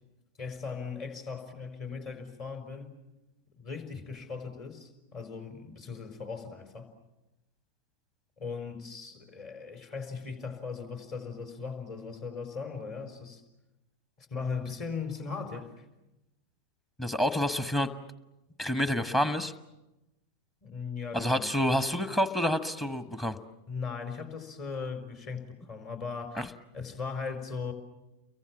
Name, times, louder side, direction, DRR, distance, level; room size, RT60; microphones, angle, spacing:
voice 1, 0.4-2.9 3.6-6.9 8.4-13.4 14.2-15.8 20.6-21.6 23.7-27.7, left 5 dB, 40° left, 7 dB, 4.4 m, -38 dB
voice 2, 17.0-17.9 18.6-19.5 21.1-23.4 26.4-26.5, left 1 dB, 15° left, 11 dB, 1.3 m, -28 dB
30.0 x 23.0 x 7.3 m, 0.98 s
figure-of-eight pair, 90°, 0 cm